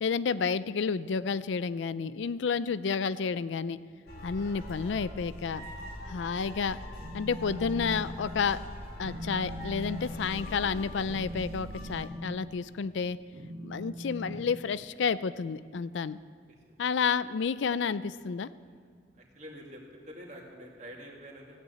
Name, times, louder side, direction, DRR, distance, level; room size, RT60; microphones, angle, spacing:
voice 1, 0.0-3.8 4.2-5.7 6.1-6.8 7.1-8.6 9.0-13.2 13.6-16.2 16.8-18.5, left 5 dB, 70° left, 16 dB, 0.4 m, -30 dB
sound 1, 4.1-12.0, equal, 50° left, 3.0 m, -42 dB
Telephone, 7.0-8.0 8.4-8.6 9.0-15.1, equal, 70° right, 2.1 m, -41 dB
voice 2, 16.5-16.8 19.1-21.6, equal, 35° right, -1 dB, 2.4 m, -47 dB
15.5 x 9.1 x 8.0 m, 2.1 s
head